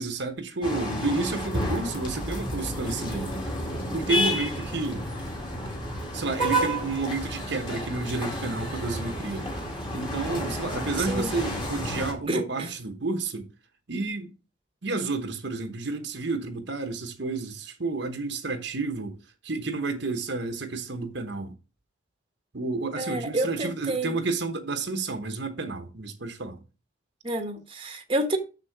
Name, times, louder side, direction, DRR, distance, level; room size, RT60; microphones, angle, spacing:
voice 1, 0.0-3.4 3.9-5.1 6.1-9.5 9.9-13.5 13.9-14.3 14.8-19.2 19.4-21.5 22.5-26.6, right 3 dB, 55° right, 1.1 m, -30 dB
sound 1, 0.6-12.1, equal, 25° left, 2.1 m, -31 dB
voice 2, 11.0-11.3 12.3-12.7 23.0-24.2 27.2-28.4, right 1 dB, 25° right, 1.1 m, -29 dB
6.9 x 6.5 x 4.6 m
head